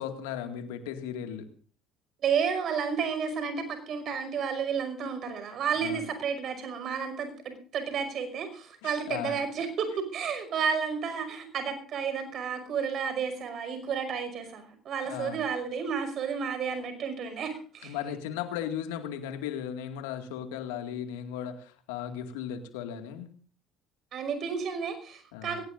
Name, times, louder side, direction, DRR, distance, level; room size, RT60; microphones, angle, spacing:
voice 1, 0.0-1.5 5.8-6.0 8.8-9.4 15.1-15.4 17.8-23.3 25.3-25.6, left 9 dB, 85° left, 7 dB, 2.1 m, -36 dB
voice 2, 2.2-18.0 24.1-25.6, right 6 dB, 55° right, 8 dB, 5.6 m, -31 dB
22.0 x 18.0 x 2.6 m, 0.42 s
hypercardioid pair, 70°, 0 cm